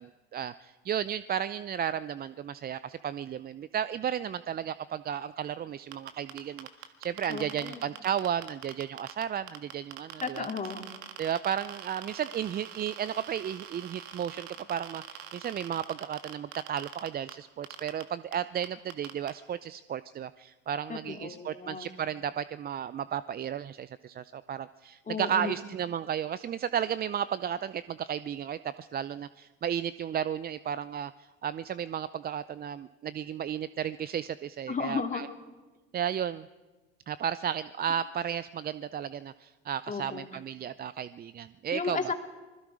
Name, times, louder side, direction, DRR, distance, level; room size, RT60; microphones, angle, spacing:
voice 1, 0.0-10.5 11.2-31.1 31.4-35.3 35.9-36.5 37.1-42.1, right 9 dB, 30° right, 16 dB, 0.6 m, -34 dB
sound 1, 5.9-9.2 9.5-17.3 17.6-18.0 18.3-18.4 18.6-19.3, right 12 dB, 75° right, 1.8 m, -43 dB
voice 2, 7.3-7.8 10.2-10.8 20.9-21.9 25.1-25.5 34.7-35.2 39.9-40.3 41.7-42.1, left 5 dB, 25° left, 4 dB, 2.7 m, -34 dB
26.5 x 21.0 x 4.9 m, 1.2 s
hypercardioid pair, 75°, 32 cm